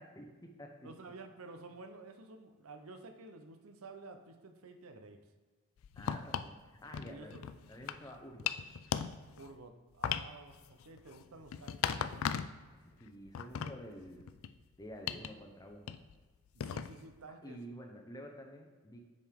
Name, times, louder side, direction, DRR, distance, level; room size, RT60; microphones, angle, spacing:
voice 1, 0.8-5.2 7.1-7.5 9.4-12.4 16.5-17.6, right 3 dB, 75° right, 7 dB, 0.7 m, -52 dB
sound 1, 5.8-6.5 6.9-8.1 8.4-9.5 10.0-12.7 13.0-14.6 15.1-15.3 15.9-16.1 16.6-17.1, left 8 dB, 65° left, 0.3 m, -38 dB
voice 2, 6.0-7.4 7.7-8.5 12.7-14.3 14.8-16.0 17.4-19.0, equal, 15° left, 2 dB, 0.8 m, -49 dB
7.4 x 5.6 x 3.5 m, 1.3 s
head